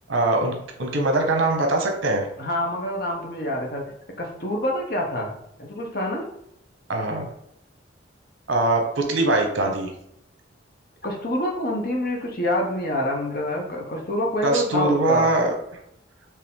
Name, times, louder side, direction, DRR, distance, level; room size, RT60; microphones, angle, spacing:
voice 1, 0.1-2.3 6.9-7.3 8.5-9.9 14.4-15.5, right 2 dB, 90° right, 3 dB, 0.9 m, -22 dB
voice 2, 2.4-3.9 4.2-5.3 5.6-6.3 11.0-15.3, left 1 dB, 50° left, 0 dB, 1.0 m, -26 dB
4.6 x 2.9 x 3.7 m, 0.77 s
head